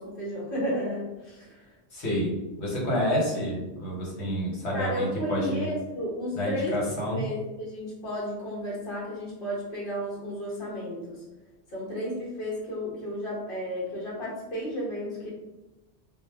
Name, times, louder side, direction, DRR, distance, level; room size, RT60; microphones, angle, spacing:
voice 1, 0.0-1.7 4.7-11.2 11.7-15.3, equal, 55° left, -5 dB, 1.1 m, -33 dB
voice 2, 1.9-2.3 2.6-5.7 6.4-7.2, equal, 75° left, -4 dB, 1.3 m, -28 dB
2.5 x 2.1 x 3.4 m, 1.0 s
omnidirectional pair, 1.1 m